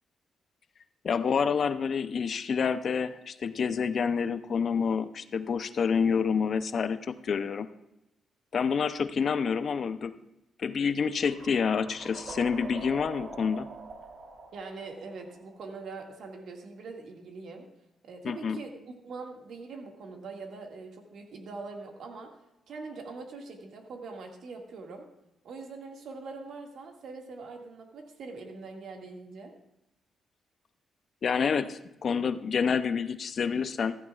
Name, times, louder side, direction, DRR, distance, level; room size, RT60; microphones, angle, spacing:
voice 1, 1.0-7.7 8.5-10.1 10.6-13.7 18.2-18.6 31.2-34.0, left 6 dB, 50° left, 12 dB, 0.5 m, -28 dB
sound 1, 11.2-16.2, right 3 dB, 55° right, 3.0 m, -45 dB
voice 2, 14.5-17.7 18.0-22.3 22.7-25.1 25.4-29.6, right 3 dB, 70° right, 2 dB, 1.9 m, -43 dB
15.0 x 14.0 x 2.4 m, 0.89 s
cardioid pair, 105°, 0 cm